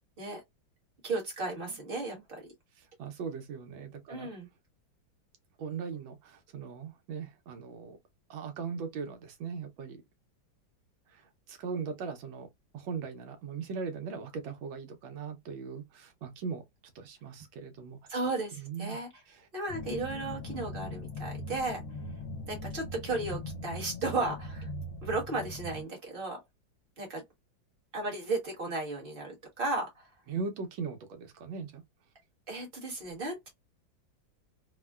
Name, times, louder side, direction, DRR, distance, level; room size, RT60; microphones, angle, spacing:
voice 1, 1.0-2.5 4.1-4.5 18.1-19.1 19.5-21.8 22.5-24.7 25.0-26.4 27.0-27.2 27.9-30.1 32.5-33.5, right 3 dB, 35° right, 1.1 m, -34 dB
voice 2, 3.0-4.3 5.6-8.0 8.3-10.0 11.1-11.2 11.5-12.5 12.7-16.6 16.9-18.0 18.6-19.0 19.3-19.5 30.3-31.8, right 5 dB, 80° right, 1.5 m, -39 dB
sound 1, 19.7-25.8, left 2 dB, 65° left, 1.5 m, -40 dB
3.5 x 2.1 x 2.3 m
omnidirectional pair, 2.1 m